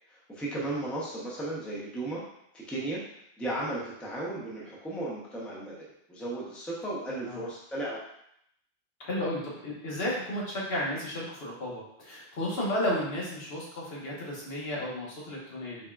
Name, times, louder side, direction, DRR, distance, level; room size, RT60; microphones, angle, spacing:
voice 1, 0.1-2.2 2.5-3.0 3.4-8.0, right 2 dB, ahead, -5 dB, 0.7 m, -35 dB
voice 2, 9.0-15.8, left 1 dB, 70° left, -5 dB, 1.3 m, -33 dB
4.1 x 3.5 x 2.3 m, 0.74 s
omnidirectional pair, 1.1 m